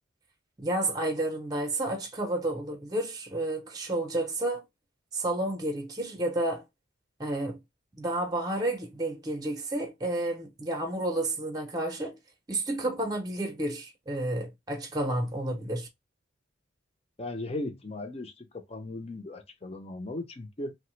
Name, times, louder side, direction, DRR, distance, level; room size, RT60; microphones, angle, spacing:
voice 1, 0.6-4.6 5.1-6.6 7.2-7.6 8.0-12.2 12.5-15.9, right 1 dB, 20° right, 0.6 m, -31 dB
voice 2, 17.2-20.7, left 2 dB, 30° left, 0.6 m, -37 dB
3.2 x 2.1 x 3.1 m
head